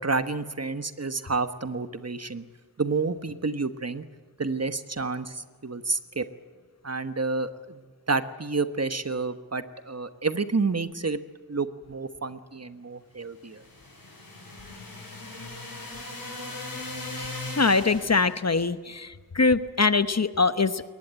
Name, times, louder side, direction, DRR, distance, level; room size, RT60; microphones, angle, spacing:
voice 1, 0.0-2.4 2.8-4.1 4.4-6.3 6.8-7.8 8.1-11.2 11.5-13.6, right 4 dB, 45° right, 10 dB, 1.3 m, -29 dB
sound 1, 13.4-18.4, left 2 dB, 85° left, 7.6 m, -38 dB
voice 2, 17.6-20.8, left 4 dB, 50° left, 12 dB, 1.0 m, -23 dB
22.0 x 19.5 x 9.0 m, 1.5 s
wide cardioid pair, 40°, 35 cm